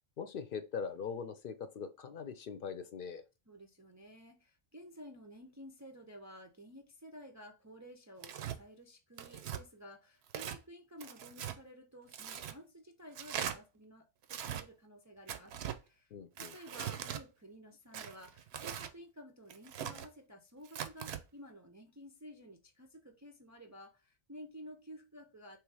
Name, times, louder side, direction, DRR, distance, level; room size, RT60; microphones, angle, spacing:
voice 1, 0.2-3.2 16.1-16.5, left 6 dB, 60° left, 0.7 m, -41 dB
voice 2, 3.5-25.6, equal, 25° right, 0.4 m, -53 dB
Tearing, 8.2-8.6 9.2-9.6 10.3-10.6 11.0-11.6 12.1-12.6 13.1-13.6 14.2-14.6 15.3-15.8 16.4-17.2 17.9-18.9 19.5-20.1 20.7-21.2, right 9 dB, 85° right, 0.8 m, -41 dB
3.5 x 3.1 x 4.7 m
omnidirectional pair, 1.0 m